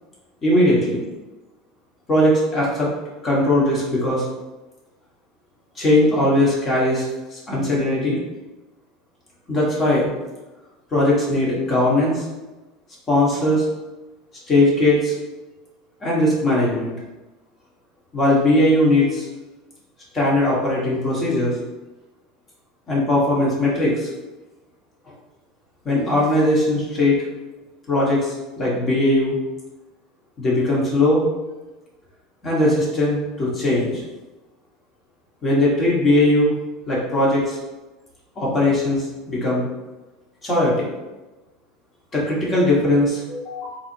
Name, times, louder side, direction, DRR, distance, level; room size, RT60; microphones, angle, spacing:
voice 1, 0.4-1.0 2.1-2.9 3.2-4.2 5.8-8.2 9.5-10.1 10.9-12.2 13.1-13.6 14.5-15.1 16.0-16.9 18.1-19.2 20.1-21.6 22.9-24.1 25.8-27.2 27.9-29.4 30.4-31.3 32.4-34.0 35.4-36.5 36.9-37.6 38.3-39.7 40.4-40.9 42.1-43.8, left 1 dB, 25° left, -5 dB, 1.5 m, -19 dB
4.0 x 2.9 x 4.5 m, 1.1 s
supercardioid pair, 150°, 0 cm